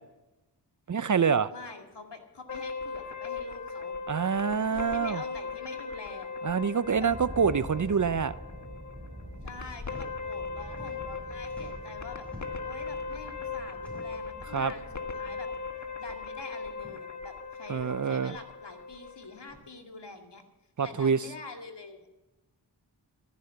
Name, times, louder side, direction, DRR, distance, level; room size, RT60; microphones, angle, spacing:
voice 1, 0.9-1.5 4.1-5.2 6.4-8.3 14.5-14.7 17.7-18.4 20.8-21.2, right 6 dB, 45° right, 16 dB, 0.6 m, -26 dB
voice 2, 1.5-4.0 4.7-6.3 6.9-7.1 9.4-12.3 12.6-14.9 15.1-15.5 16.0-20.4 20.8-22.2, left 3 dB, 65° left, 4 dB, 2.2 m, -45 dB
sound 1, 2.5-19.6, left 4 dB, 40° left, 1.7 m, -39 dB
sound 2, 6.8-16.4, equal, 15° right, 4.3 m, -46 dB
sound 3, 9.8-10.1 10.4-11.2 11.5-12.7 13.7-14.3 15.2-15.4 15.7-15.8 16.7-17.0 18.1-18.2 19.4-19.7 20.8-21.0, equal, 5° left, 5.7 m, -50 dB
14.0 x 10.5 x 7.1 m, 1.0 s
cardioid pair, 45°, 44 cm